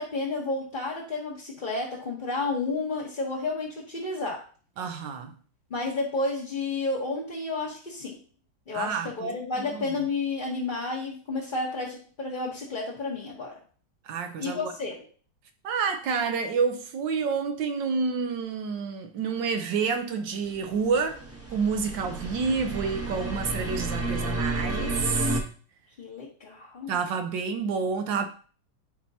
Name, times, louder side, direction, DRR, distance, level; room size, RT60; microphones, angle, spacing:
voice 1, 0.0-4.4 5.7-8.2 8.7-13.5 14.4-15.0 26.0-26.9, left 3 dB, 30° left, 0.9 m, -31 dB
voice 2, 4.8-5.3 8.7-9.8 14.0-14.7 15.6-21.2 21.5-25.4 26.9-28.3, right 5 dB, 70° right, 1.3 m, -29 dB
sound 1, 20.6-25.4, right 2 dB, 10° right, 0.7 m, -31 dB
10.5 x 4.4 x 2.8 m
omnidirectional pair, 2.3 m